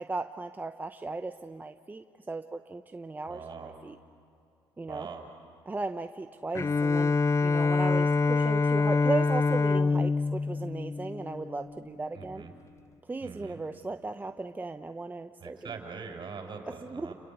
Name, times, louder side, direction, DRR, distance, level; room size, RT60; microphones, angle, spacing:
voice 1, 0.0-4.0 4.8-5.1 5.7-7.2 7.4-12.5 13.1-15.7 16.8-17.1, right 3 dB, 20° right, 8 dB, 0.8 m, -36 dB
voice 2, 3.3-3.8 4.8-5.3 12.1-12.5 13.2-13.6 15.4-17.1, right 5 dB, 50° right, 4 dB, 5.0 m, -42 dB
Bowed string instrument, 6.6-11.8, left 4 dB, 30° left, 0.6 m, -26 dB
28.0 x 22.0 x 8.1 m, 2.6 s
supercardioid pair, 70°, 10 cm